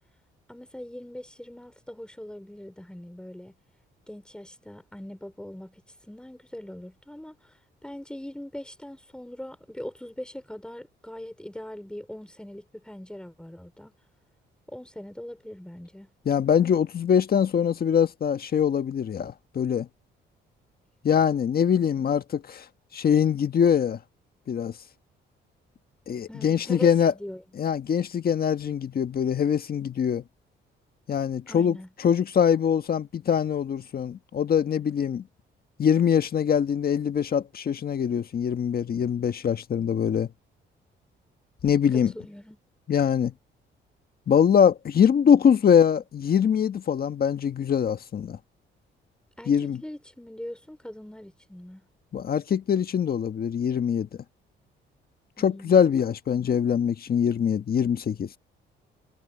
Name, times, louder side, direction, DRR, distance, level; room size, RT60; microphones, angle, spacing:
voice 1, 0.5-3.5 4.1-5.8 6.1-7.5 7.8-13.9 14.7-16.1 26.3-27.4 31.5-31.9 41.9-42.6 49.4-49.5 49.8-51.9 55.4-56.0, left 1 dB, 5° left, 4.8 m, -41 dB
voice 2, 16.2-19.9 21.0-22.6 22.9-24.0 24.5-24.7 26.1-27.1 27.6-30.2 31.1-31.8 32.0-35.2 35.8-40.3 41.6-42.1 42.9-43.3 44.3-48.4 49.5-49.8 52.1-54.1 55.4-58.3, left 8 dB, 50° left, 1.5 m, -23 dB
cardioid pair, 90°, 20 cm